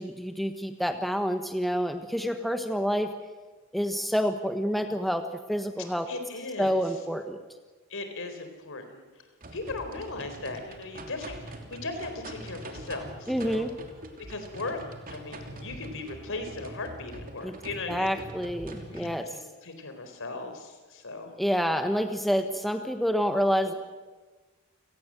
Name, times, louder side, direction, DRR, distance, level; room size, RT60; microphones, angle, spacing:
voice 1, 0.0-3.1 3.7-6.1 6.6-7.4 13.3-13.7 17.4-17.5 17.9-19.3 21.4-23.7, equal, ahead, 6 dB, 1.2 m, -28 dB
voice 2, 5.8-6.8 7.9-9.0 9.5-13.7 14.3-14.8 15.1-18.1 18.8-21.3, left 3 dB, 65° left, 7 dB, 4.2 m, -38 dB
sound 1, 9.4-19.1, right 1 dB, 40° right, 3.1 m, -43 dB
29.5 x 18.5 x 7.6 m, 1.3 s
head